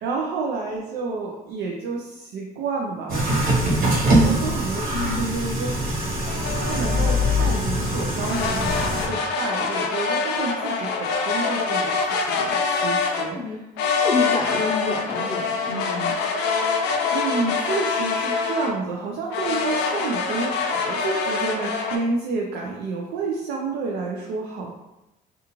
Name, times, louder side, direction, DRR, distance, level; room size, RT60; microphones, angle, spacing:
voice 1, 0.0-5.7 6.7-8.7 9.1-13.6 17.1-24.7, right 3 dB, 75° right, -1 dB, 0.4 m, -30 dB
sound 1, 3.1-9.1, equal, 55° right, 0.9 m, -22 dB
voice 2, 4.9-5.4 13.3-13.6 13.9-16.2, left 3 dB, 30° left, 0 dB, 0.6 m, -28 dB
sound 2, 6.3-7.5 8.2-13.3 13.8-18.8 19.3-22.0, left 5 dB, 90° left, 0.4 m, -25 dB
2.4 x 2.4 x 2.9 m, 0.97 s
cardioid pair, 110°, 17 cm